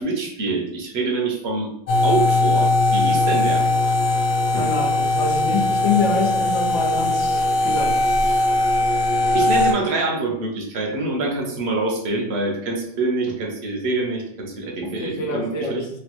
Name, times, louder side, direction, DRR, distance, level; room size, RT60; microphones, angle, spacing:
voice 1, 0.0-1.7 2.0-3.7 4.5-4.7 9.3-15.8, right 3 dB, 65° right, 2 dB, 0.8 m, -25 dB
sound 1, 1.9-9.7, left 2 dB, 55° left, 0.5 m, -20 dB
voice 2, 4.6-8.0 14.8-16.0, left 3 dB, 90° left, 1 dB, 1.0 m, -26 dB
3.0 x 2.2 x 2.9 m, 0.73 s
omnidirectional pair, 1.2 m